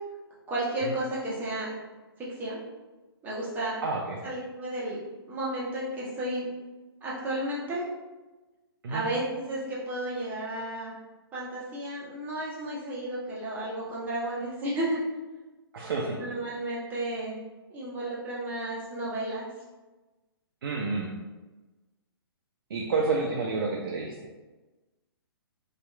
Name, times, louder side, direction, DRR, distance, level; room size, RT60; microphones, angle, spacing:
voice 1, 0.5-1.7 2.2-2.6 3.2-3.8 4.2-5.0 5.3-6.5 7.0-7.8 8.9-10.9 11.3-15.0 16.2-17.4 17.7-19.5, right 1 dB, 15° right, -7 dB, 0.7 m, -32 dB
voice 2, 3.8-4.2 8.8-9.0 15.7-16.2 20.6-21.1 22.7-24.1, right 3 dB, 55° right, -1 dB, 0.4 m, -29 dB
2.7 x 2.3 x 2.2 m, 1.2 s
figure-of-eight pair, 125°, 13 cm